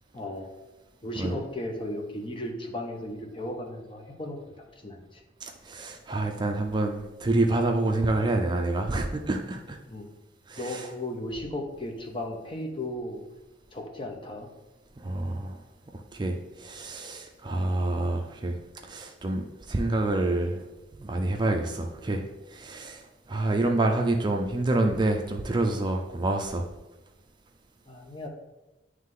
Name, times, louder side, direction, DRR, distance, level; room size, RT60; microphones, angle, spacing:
voice 1, 0.1-0.5 1.0-4.4 4.8-5.2 9.9-10.1 10.6-13.2 13.7-14.5 27.9-28.3, left 1 dB, 30° left, 2 dB, 0.8 m, -35 dB
voice 2, 5.4-9.8 10.5-10.9 15.0-15.6 16.1-20.7 20.9-26.7, right 2 dB, 25° right, 3 dB, 0.4 m, -28 dB
9.2 x 3.2 x 3.8 m, 1.0 s
head